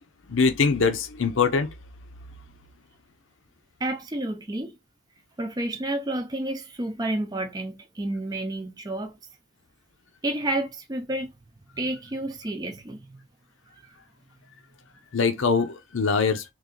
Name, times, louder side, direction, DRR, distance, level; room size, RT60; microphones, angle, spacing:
voice 1, 0.3-1.7 15.1-16.4, left 5 dB, 85° left, 0.7 m, -23 dB
voice 2, 3.8-4.8 5.4-9.2 10.2-11.3 11.7-13.2, right 1 dB, 20° right, 0.5 m, -30 dB
3.2 x 2.5 x 3.8 m
head